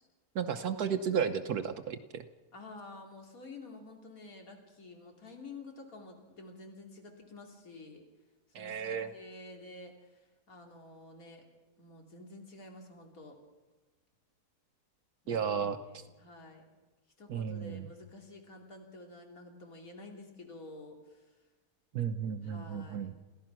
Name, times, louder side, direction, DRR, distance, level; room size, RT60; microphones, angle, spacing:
voice 1, 0.3-2.2 8.5-9.1 15.3-16.0 17.3-17.9 21.9-23.1, right 7 dB, 75° right, 7 dB, 1.4 m, -33 dB
voice 2, 2.5-8.0 8.6-11.4 11.8-13.4 15.2-16.6 17.2-21.3 22.4-23.1, left 2 dB, 60° left, 2 dB, 3.3 m, -50 dB
28.0 x 16.0 x 6.0 m, 1.2 s
omnidirectional pair, 1.7 m